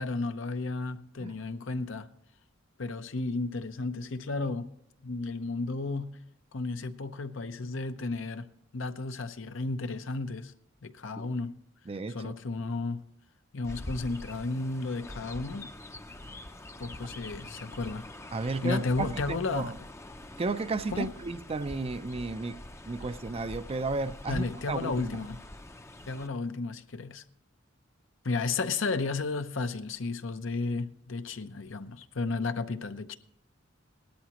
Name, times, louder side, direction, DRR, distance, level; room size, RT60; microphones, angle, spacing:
voice 1, 0.0-2.1 2.8-4.7 5.0-6.2 6.5-8.5 8.7-10.5 10.8-11.5 12.1-13.0 13.5-15.7 16.8-18.1 18.6-19.8 20.9-21.1 24.3-25.4 26.1-27.2 28.2-33.2, left 3 dB, 70° left, 0.8 m, -33 dB
voice 2, 11.9-12.3 18.3-19.7 20.4-22.6 22.9-25.2, right 3 dB, 30° right, 0.5 m, -33 dB
Chirp tweet, 13.6-26.3, left 1 dB, 15° left, 0.6 m, -44 dB
18.0 x 13.0 x 3.0 m
head